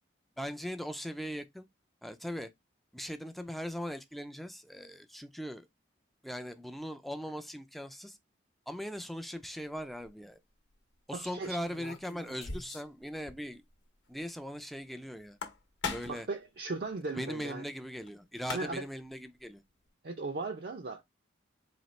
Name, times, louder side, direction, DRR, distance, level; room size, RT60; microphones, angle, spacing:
voice 1, 0.4-1.7 2.0-2.5 2.9-5.6 6.2-8.2 8.7-10.4 11.1-13.6 14.1-15.4 15.9-16.3 17.1-19.6, equal, ahead, 0.3 m, -40 dB
sound 1, 9.7-10.1 11.6-13.0 13.3-13.4 13.7-13.8 15.2-16.3 18.1-18.2 18.4-19.0, left 4 dB, 70° left, 0.9 m, -40 dB
voice 2, 11.1-11.6 16.1-17.6 18.5-18.8 20.0-21.0, right 3 dB, 55° right, 0.5 m, -37 dB
4.1 x 2.8 x 3.1 m
head